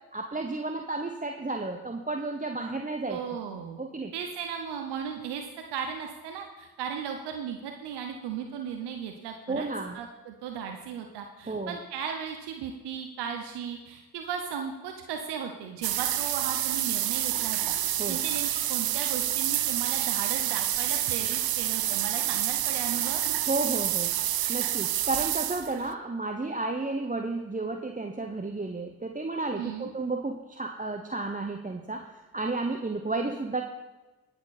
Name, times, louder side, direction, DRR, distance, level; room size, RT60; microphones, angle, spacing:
voice 1, 0.1-3.2 3.8-4.1 9.5-10.0 11.5-11.8 18.0-18.2 23.5-33.6, right 3 dB, 20° right, 3 dB, 1.0 m, -32 dB
voice 2, 3.1-3.8 4.1-9.7 9.9-23.2 29.6-29.9, right 7 dB, 90° right, 4 dB, 0.9 m, -36 dB
sound 1, 15.8-25.9, right 13 dB, 65° right, 0.6 m, -28 dB
18.5 x 6.9 x 4.1 m, 1.2 s
supercardioid pair, 40°, 39 cm